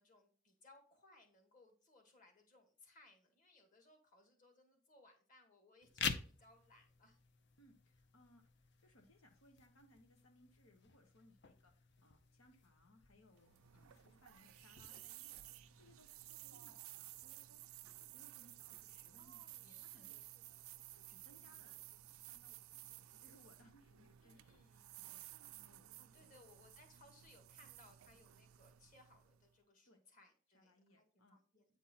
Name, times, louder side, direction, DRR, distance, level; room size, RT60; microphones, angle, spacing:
voice 1, 0.0-7.2 13.7-14.3 19.2-20.8 21.3-21.6 24.2-25.1 26.0-31.8, left 2 dB, 40° left, 4 dB, 1.8 m, -67 dB
sound 1, 5.8-16.8, left 6 dB, 55° left, 0.7 m, -49 dB
voice 2, 7.6-8.4 8.8-17.6 18.0-20.3 20.9-21.8 22.2-25.3 25.6-25.9 26.2-26.4 29.8-30.0 30.5-31.4, left 1 dB, 85° left, 4 dB, 1.3 m, -68 dB
sound 2, 13.3-29.5, right 15 dB, 90° right, 0.4 m, -56 dB
9.1 x 4.6 x 4.2 m, 0.39 s
head